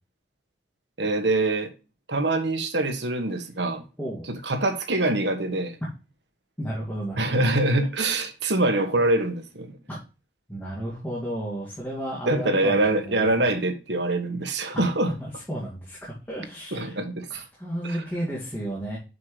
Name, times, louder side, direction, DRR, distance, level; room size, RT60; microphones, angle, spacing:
voice 1, 1.0-1.7 2.1-3.8 4.4-5.8 7.2-9.7 12.3-15.1 16.7-17.4 17.8-18.0, right 2 dB, 75° right, 1.4 m, -24 dB
voice 2, 6.6-7.5 9.9-10.0 10.5-13.3 14.7-14.9 15.2-17.0 17.3-19.0, right 1 dB, 10° left, 2.2 m, -33 dB
6.9 x 6.6 x 3.1 m
head